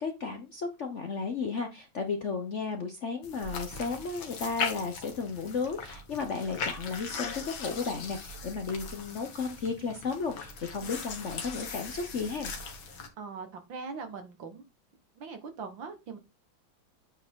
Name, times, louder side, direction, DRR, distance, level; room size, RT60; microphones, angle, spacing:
voice 1, 0.0-12.5, left 4 dB, 50° left, 5 dB, 0.9 m, -34 dB
sound 1, 3.2-13.1, left 5 dB, 70° left, 2.3 m, -39 dB
voice 2, 13.2-14.6 15.2-16.2, right 5 dB, 65° right, 7 dB, 2.2 m, -41 dB
8.8 x 4.7 x 3.7 m, 0.25 s
omnidirectional pair, 2.2 m